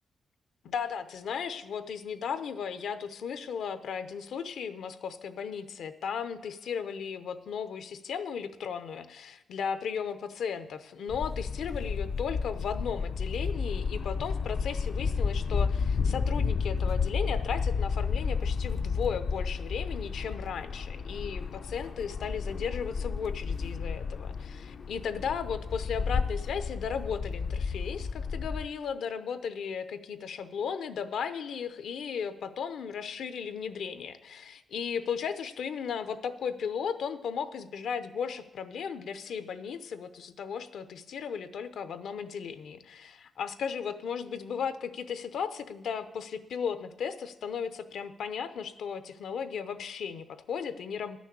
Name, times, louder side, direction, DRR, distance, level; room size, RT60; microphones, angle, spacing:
voice 1, 0.6-51.2, left 7 dB, 75° left, 11 dB, 0.7 m, -35 dB
sound 1, 11.1-28.7, left 5 dB, 45° left, 0.3 m, -32 dB
11.0 x 6.2 x 8.4 m, 0.96 s
wide cardioid pair, 180°, 0 cm